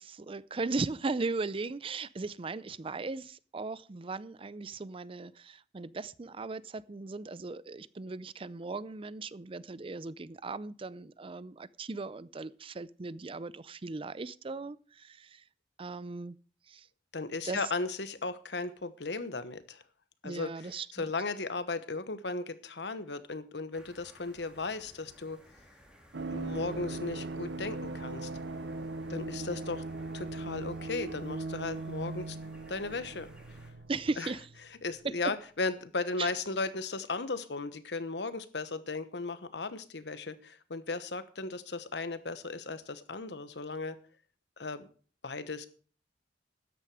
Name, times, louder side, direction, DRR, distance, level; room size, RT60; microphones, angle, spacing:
voice 1, 0.0-15.4 15.8-16.4 16.7-16.9 17.4-17.6 20.2-21.1 33.9-34.5 35.0-35.1 36.2-36.3, right 3 dB, 30° right, 0.5 m, -37 dB
voice 2, 17.1-19.8 20.2-25.4 26.3-28.3 29.1-29.8 30.1-32.4 32.7-33.3 34.2-34.3 34.8-44.0 44.6-44.8 45.2-45.7, left 3 dB, 70° left, 1.2 m, -36 dB
sound 1, 23.7-33.7, equal, 5° right, 2.7 m, -58 dB
sound 2, 26.1-34.7 34.9-35.0, right 2 dB, 75° right, 0.7 m, -39 dB
13.5 x 9.9 x 4.9 m
head